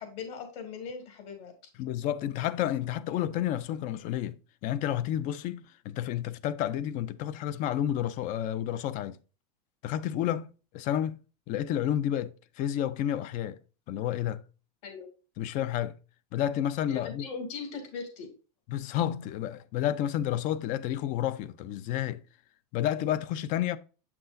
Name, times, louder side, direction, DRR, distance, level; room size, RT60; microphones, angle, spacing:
voice 1, 0.0-1.5 14.8-15.1 16.9-18.3, left 5 dB, 55° left, 2.7 m, -39 dB
voice 2, 1.8-9.2 9.8-11.2 11.5-13.6 13.9-14.4 15.4-16.0 16.3-17.2 18.7-22.2 22.7-23.8, left 11 dB, 40° left, 0.5 m, -30 dB
7.6 x 6.0 x 2.6 m
supercardioid pair, 140°, 20 cm